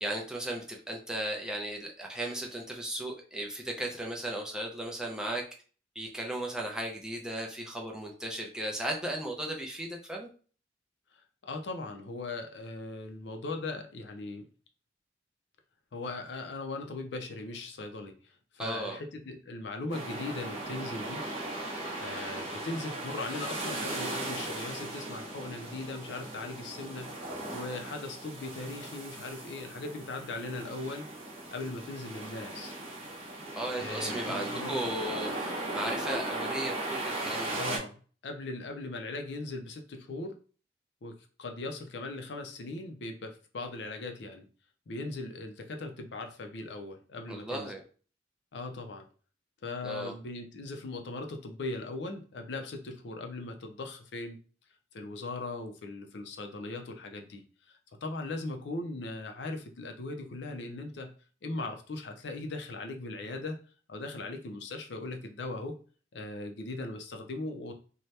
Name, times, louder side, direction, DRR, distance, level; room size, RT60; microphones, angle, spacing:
voice 1, 0.0-5.4 6.0-10.3 18.6-19.0 33.6-37.6 47.3-47.8 49.8-50.1, right 1 dB, 5° right, 0 dB, 0.4 m, -36 dB
voice 2, 11.4-14.4 15.9-21.2 22.0-27.1 27.5-31.0 31.5-32.8 33.8-34.9 37.6-37.9 38.2-40.3 41.0-44.5 44.9-47.7 48.5-49.0 49.6-54.4 54.9-57.4 57.7-61.1 61.4-63.6 63.9-65.8 66.1-67.7, left 2 dB, 65° left, 5 dB, 0.5 m, -39 dB
sound 1, 19.9-37.8, right 2 dB, 30° right, 0.9 m, -37 dB
2.8 x 2.2 x 3.2 m, 0.39 s
head